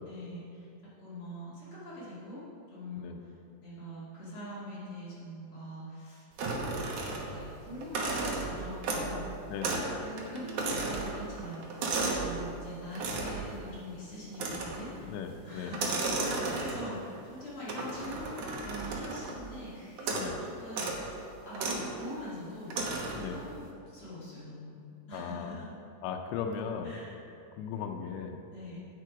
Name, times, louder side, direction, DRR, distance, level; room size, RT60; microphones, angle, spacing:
voice 1, 0.1-2.4 2.7-3.3 3.6-6.9 7.3-9.2 10.0-11.6 11.9-15.2 15.4-20.2 20.6-22.7 23.2-24.8 25.1-25.7 26.8-27.1 28.5-28.8, left 1 dB, 45° left, -10 dB, 3.0 m, -43 dB
sound 1, 6.4-7.5 7.8-9.2 9.6-9.9 10.2-12.3 13.0-13.4 14.3-14.9 15.7-17.0 17.7-19.4 20.0-20.3 20.7-21.0 21.5-21.9 22.7-23.3, right 3 dB, 80° right, 1.7 m, -33 dB
voice 2, 9.5-9.9 15.1-15.8 20.1-20.4 23.1-23.4 25.1-25.6 26.0-26.9 27.6-28.4, left 7 dB, 90° left, 3 dB, 3.0 m, -37 dB
9.3 x 8.8 x 4.9 m, 2.6 s
omnidirectional pair, 5.1 m